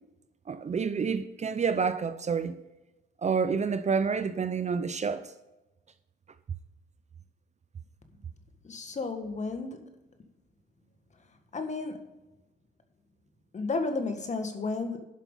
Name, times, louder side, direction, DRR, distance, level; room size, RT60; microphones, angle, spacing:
voice 1, 0.5-2.6 3.2-5.3, right 5 dB, 35° right, 0.6 m, -28 dB
voice 2, 8.6-9.9 11.5-12.0 13.5-15.0, left 3 dB, 35° left, 1.7 m, -32 dB
11.5 x 5.8 x 5.5 m
cardioid pair, 90°, 20 cm